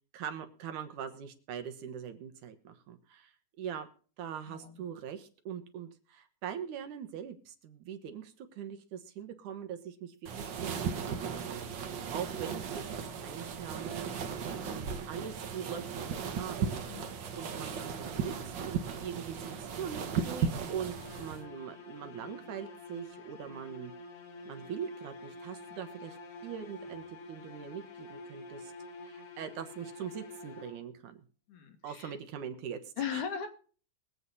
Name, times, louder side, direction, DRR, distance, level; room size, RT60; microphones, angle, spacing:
voice 1, 0.1-3.9 4.2-12.8 13.2-19.5 19.8-23.9 24.5-26.2 26.4-28.7 29.0-31.2 31.8-33.2, right 8 dB, 80° right, 7 dB, 2.8 m, -42 dB
voice 2, 4.5-4.8 14.6-14.9 16.9-17.1 31.5-32.1 33.0-33.5, left 7 dB, 85° left, 5 dB, 3.2 m, -38 dB
sound 1, 10.3-21.4, right 6 dB, 60° right, 1.2 m, -36 dB
sound 2, 20.9-31.1, left 3 dB, 55° left, 2.3 m, -48 dB
22.0 x 8.1 x 4.1 m, 0.41 s
omnidirectional pair, 3.5 m